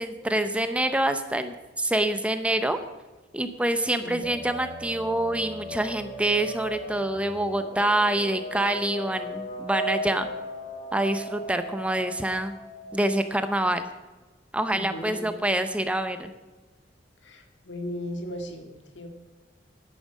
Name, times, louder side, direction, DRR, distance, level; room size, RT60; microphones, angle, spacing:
voice 1, 0.0-2.8 3.3-10.3 10.9-12.5 12.9-13.9 14.5-16.3, right 1 dB, 5° right, 9 dB, 0.7 m, -26 dB
sound 1, 4.2-13.5, right 1 dB, 40° left, 2.6 m, -37 dB
voice 2, 14.7-15.3 17.2-19.1, left 1 dB, 85° left, 5 dB, 1.9 m, -37 dB
10.0 x 9.1 x 6.3 m, 1.2 s
head